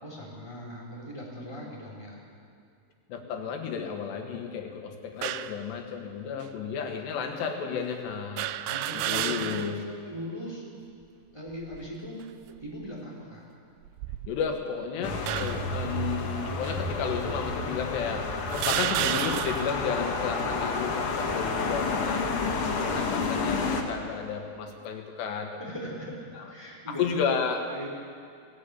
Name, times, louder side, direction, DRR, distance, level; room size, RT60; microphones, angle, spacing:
voice 1, 0.0-2.2 8.6-10.6 11.3-13.5 25.6-27.2 27.7-27.9, equal, 5° right, -4 dB, 3.5 m, -40 dB
voice 2, 3.1-8.5 8.9-9.8 14.3-22.3 22.7-25.6 26.4-26.5 26.9-27.7, left 6 dB, 80° left, 4 dB, 3.5 m, -32 dB
sound 1, 5.2-5.6 6.4-6.5 8.4-9.8 10.3-10.4 11.5-11.9 12.6-12.9 13.8-14.6 15.3-15.8 16.6-16.8 17.7-17.8 18.5-19.8, right 13 dB, 80° right, 2.5 m, -31 dB
sound 2, 15.0-23.8, left 3 dB, 65° left, 1.4 m, -30 dB
18.5 x 17.0 x 8.4 m, 2.3 s
omnidirectional pair, 4.9 m